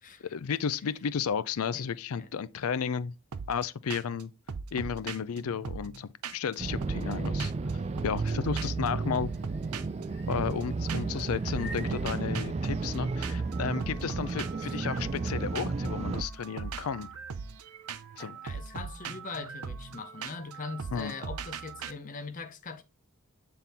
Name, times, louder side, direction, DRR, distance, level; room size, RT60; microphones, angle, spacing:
voice 1, 0.2-3.1 3.5-4.3 4.7-7.5 8.0-9.3 10.3-17.1 18.2-18.4 20.9-21.1, left 6 dB, 75° left, 0.4 m, -33 dB
sound 1, 3.3-3.6 3.9-4.2 4.5-6.5 6.8-8.3 8.6-8.9 9.1-11.2 11.5-21.9, right 5 dB, 85° right, 0.6 m, -40 dB
sound 2, 6.6-16.2, right 3 dB, 30° right, 0.3 m, -33 dB
sound 3, 8.5-18.4, left 1 dB, 10° left, 2.2 m, -54 dB
voice 2, 10.9-11.3 13.7-14.0 14.6-14.9 18.3-22.8, left 4 dB, 35° left, 0.7 m, -42 dB
7.4 x 3.8 x 4.1 m
head